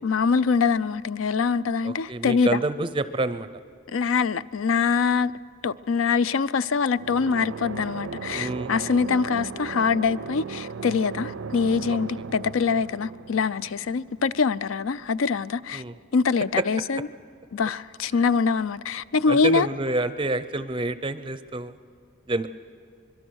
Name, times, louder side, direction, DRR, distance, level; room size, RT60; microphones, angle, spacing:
voice 1, 0.0-2.6 3.9-5.3 5.6-15.8 16.1-17.1 17.5-19.7, left 5 dB, 80° left, 0.5 m, -24 dB
voice 2, 1.8-3.5 8.3-9.0 11.9-12.0 15.7-15.9 16.6-16.7 19.3-21.8 22.3-22.5, right 2 dB, 25° right, 0.5 m, -28 dB
sound 1, 7.0-14.6, right 5 dB, 75° right, 0.5 m, -37 dB
24.5 x 22.0 x 6.3 m
head